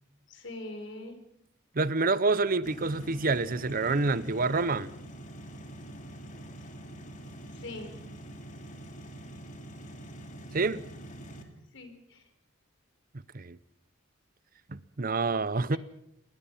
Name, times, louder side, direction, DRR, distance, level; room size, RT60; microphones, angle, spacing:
voice 1, 0.3-1.2 7.5-8.0 11.7-12.3 15.7-15.8, left 2 dB, 65° left, 4.8 m, -42 dB
voice 2, 1.7-4.9 10.5-10.8 13.3-13.6 14.7-15.8, right 3 dB, 45° right, 0.8 m, -27 dB
sound 1, 2.6-11.4, right 1 dB, 40° left, 2.8 m, -45 dB
28.0 x 20.0 x 5.6 m
head